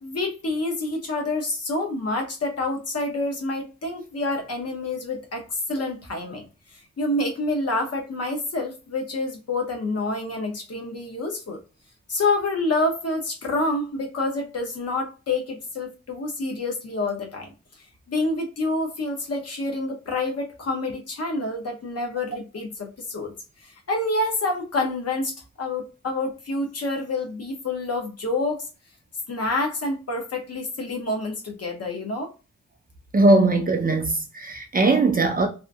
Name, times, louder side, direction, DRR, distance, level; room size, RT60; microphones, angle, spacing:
voice 1, 0.0-6.5 6.7-11.6 12.1-17.5 18.1-23.3 23.6-28.6 29.3-32.3, left 2 dB, 55° left, 0.8 m, -28 dB
voice 2, 33.1-35.5, right 2 dB, 30° right, 0.4 m, -19 dB
2.7 x 2.5 x 2.3 m
wide cardioid pair, 130°, 30 cm